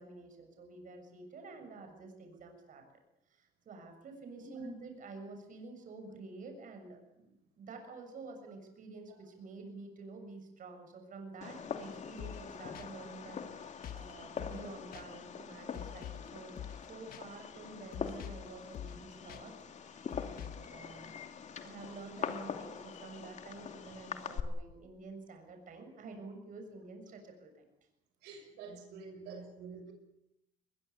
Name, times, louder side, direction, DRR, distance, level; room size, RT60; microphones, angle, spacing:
voice 1, 0.0-2.8 3.3-19.5 19.8-21.2 21.6-27.6, right 3 dB, 50° right, 5 dB, 7.0 m, -49 dB
Fireworks, 11.4-24.4, left 7 dB, 45° left, 2.6 m, -44 dB
sound 1, 12.2-12.5 12.7-12.9 13.8-14.1 14.4-14.7 14.9-15.0 15.7-16.3 16.6-16.8 17.1-17.2 17.9-18.5 18.7-19.0 19.3-19.4 20.1-20.7, left 10 dB, 60° left, 1.3 m, -45 dB
voice 2, 28.2-29.9, right 4 dB, 90° right, 4 dB, 6.6 m, -47 dB
21.5 x 21.5 x 8.5 m, 0.84 s
cardioid pair, 110°, 17 cm